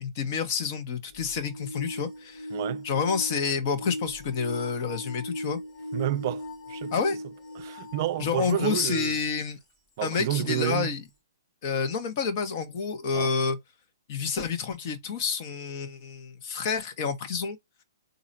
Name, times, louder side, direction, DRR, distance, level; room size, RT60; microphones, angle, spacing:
voice 1, 0.0-2.5 2.8-5.6 6.9-7.2 8.2-9.6 10.0-11.0 11.6-13.6 14.1-17.6, left 5 dB, 45° left, 1.2 m, -29 dB
sound 1, 1.1-8.8 9.5-9.6 10.6-10.7, left 1 dB, 30° left, 1.4 m, -38 dB
voice 2, 2.5-2.9 5.9-6.4 6.7-6.9 7.6-9.2 10.0-11.0 13.1-13.3, right 13 dB, 45° right, 0.4 m, -30 dB
4.1 x 2.7 x 2.7 m
hypercardioid pair, 135°, 2 cm